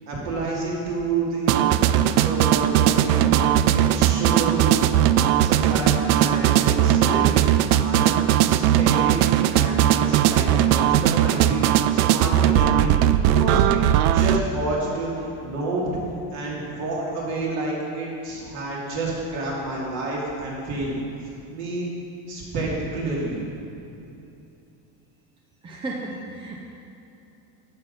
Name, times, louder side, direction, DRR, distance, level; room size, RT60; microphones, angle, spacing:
voice 1, 0.1-3.4 3.7-4.6 5.4-7.5 7.8-13.0 13.3-13.8 14.1-16.0 16.3-21.0 21.5-21.9 22.3-23.9, right 2 dB, 45° right, -4 dB, 2.8 m, -29 dB
sound 1, 1.5-14.4, right 11 dB, 60° right, 0.5 m, -19 dB
voice 2, 25.6-26.6, right 2 dB, 15° right, -1 dB, 0.5 m, -33 dB
12.0 x 7.5 x 5.6 m, 2.8 s
cardioid pair, 170°, 38 cm